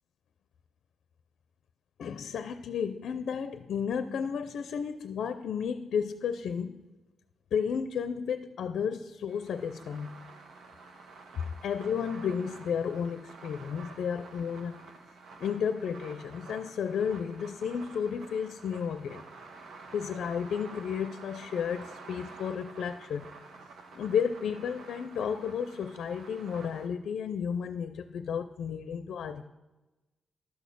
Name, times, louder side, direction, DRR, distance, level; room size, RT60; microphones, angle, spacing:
voice 1, 2.0-6.8 7.5-10.2 11.6-14.8 15.4-19.2 19.9-23.3 23.9-29.5, left 7 dB, 80° left, 11 dB, 0.5 m, -32 dB
sound 1, 9.3-26.9, right 4 dB, 85° right, 1.3 m, -49 dB
12.0 x 6.4 x 6.8 m, 1.1 s
cardioid pair, 120°, 0 cm